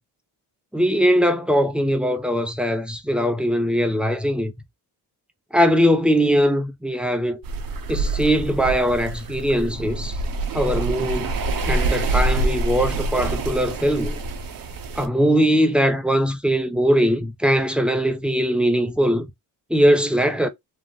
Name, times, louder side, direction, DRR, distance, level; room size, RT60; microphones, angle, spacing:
voice 1, 0.7-4.5 5.5-7.4 7.9-10.2 10.5-11.3 11.6-14.2 15.0-19.3 19.7-20.5, equal, 5° right, 0.4 m, -20 dB
sound 1, 7.4-15.1, right 2 dB, 55° right, 0.7 m, -26 dB
3.3 x 2.0 x 2.4 m
cardioid pair, 95°, 41 cm